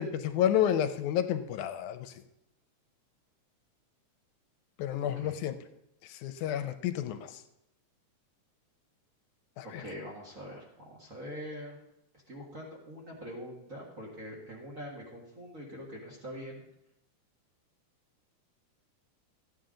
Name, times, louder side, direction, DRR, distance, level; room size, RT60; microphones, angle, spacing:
voice 1, 0.0-2.1 4.8-5.6 6.1-7.3 9.6-9.8, left 10 dB, 85° left, 9 dB, 2.1 m, -30 dB
voice 2, 9.6-11.8 12.3-16.7, equal, 30° right, -3 dB, 1.8 m, -44 dB
14.0 x 9.3 x 3.8 m, 0.85 s
omnidirectional pair, 3.4 m